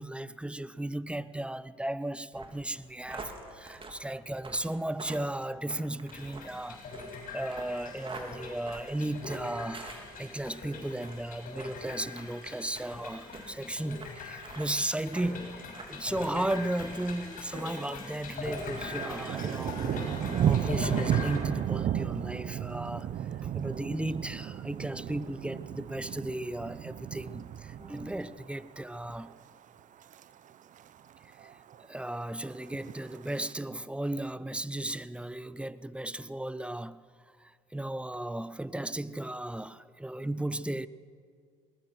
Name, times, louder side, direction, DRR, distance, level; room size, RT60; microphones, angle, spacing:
voice 1, 0.0-6.8 7.3-23.1 23.5-29.3 31.4-31.5 31.9-37.0 37.4-40.9, right 1 dB, 5° right, 0.7 m, -35 dB
sound 1, 2.3-10.6 10.9-11.2 11.6-11.7 12.1-12.3 12.7-12.9 13.3-13.4 14.0-14.1 14.4-14.7 15.1-15.3 15.7-16.5 16.9-17.2 17.5-17.7, right 3 dB, 30° right, 3.3 m, -46 dB
sound 2, 6.1-21.4, left 4 dB, 55° left, 6.7 m, -42 dB
Thunder, 17.4-18.0 18.3-28.6 29.0-29.3 29.8-30.2 30.5-30.6 30.8-30.9 31.2-31.8 32.6-33.5, right 9 dB, 50° right, 0.9 m, -33 dB
20.0 x 20.0 x 6.4 m
hypercardioid pair, 70°, 17 cm